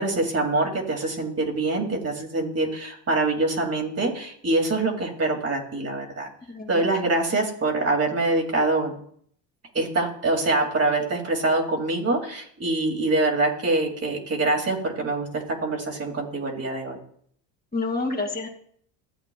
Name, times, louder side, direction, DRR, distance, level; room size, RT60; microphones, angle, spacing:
voice 1, 0.0-6.3 6.7-8.9 9.7-17.0, right 2 dB, 30° right, 0 dB, 2.4 m, -25 dB
voice 2, 6.5-6.8 17.7-18.5, left 3 dB, 20° left, 0 dB, 2.2 m, -28 dB
15.0 x 7.9 x 2.3 m, 0.63 s
supercardioid pair, 80°, 46 cm